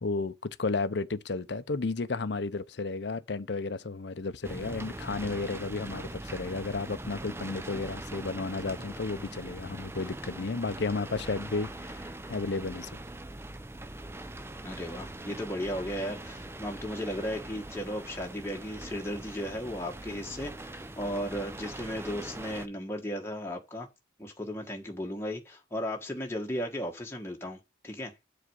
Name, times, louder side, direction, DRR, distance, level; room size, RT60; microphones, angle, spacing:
voice 1, 0.0-12.9, left 3 dB, 65° left, 0.6 m, -33 dB
sound 1, 4.4-22.7, right 1 dB, 15° right, 0.5 m, -42 dB
voice 2, 14.6-23.9 24.2-27.6 27.8-28.1, equal, 15° left, 1.2 m, -35 dB
7.6 x 4.1 x 6.3 m
head